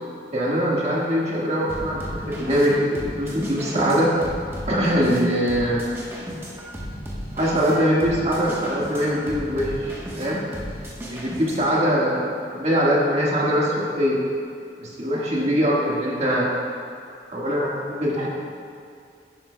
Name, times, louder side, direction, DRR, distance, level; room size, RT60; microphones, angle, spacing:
voice 1, 0.3-4.1 4.7-5.8 7.4-10.4 11.0-14.2 14.8-16.5 17.3-18.3, equal, 40° right, -5 dB, 1.6 m, -22 dB
sound 1, 1.7-11.8, equal, 15° right, 1.1 m, -35 dB
10.5 x 9.6 x 2.2 m, 2.4 s
head